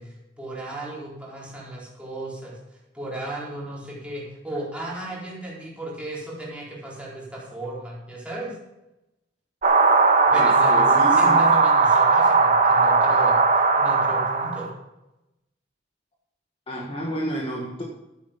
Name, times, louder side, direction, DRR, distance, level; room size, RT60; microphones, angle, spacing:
voice 1, 0.0-2.6 2.9-8.6 10.3-14.7, right 1 dB, 5° right, -6 dB, 4.2 m, -35 dB
sound 1, 9.6-14.7, right 4 dB, 40° right, 1.4 m, -18 dB
voice 2, 10.3-11.4 16.7-17.8, right 1 dB, 30° left, -2 dB, 1.6 m, -30 dB
12.0 x 10.0 x 5.2 m, 0.93 s
head